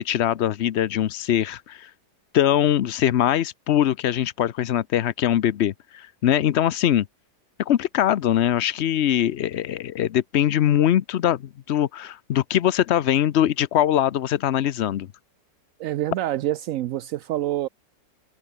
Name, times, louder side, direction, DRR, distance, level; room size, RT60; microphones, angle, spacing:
voice 1, 0.0-1.9 2.3-7.1 7.6-11.4 11.7-15.1, left 11 dB, 75° left, 0.6 m, -22 dB
voice 2, 15.8-17.7, right 14 dB, 80° right, 0.7 m, -26 dB
omnidirectional pair, 2.0 m